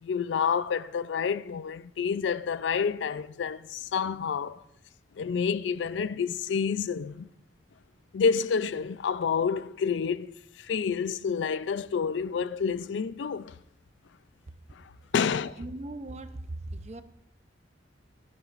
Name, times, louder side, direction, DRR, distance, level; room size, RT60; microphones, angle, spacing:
voice 1, 0.0-4.6 5.2-7.3 8.1-13.6 14.7-14.8 15.1-15.6, left 6 dB, 75° left, 0.4 m, -29 dB
voice 2, 15.6-17.0, right 2 dB, 35° right, 0.6 m, -38 dB
16.5 x 13.0 x 2.5 m
head